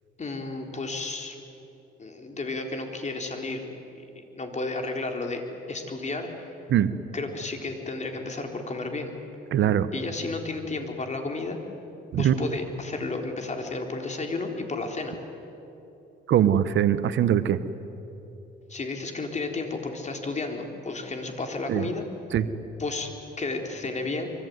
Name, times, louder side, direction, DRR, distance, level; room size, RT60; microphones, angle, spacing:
voice 1, 0.2-1.4 2.0-3.6 4.0-5.4 5.7-6.3 7.1-9.1 9.9-11.6 12.2-15.1 18.7-22.0 22.8-23.1 23.4-24.3, left 3 dB, 35° left, 4 dB, 4.0 m, -32 dB
voice 2, 9.5-9.9 12.1-12.3 16.3-17.6 21.7-21.8 22.3-22.5, right 10 dB, 70° right, 12 dB, 1.2 m, -21 dB
25.0 x 24.0 x 9.5 m, 3.0 s
cardioid pair, 90°, 20 cm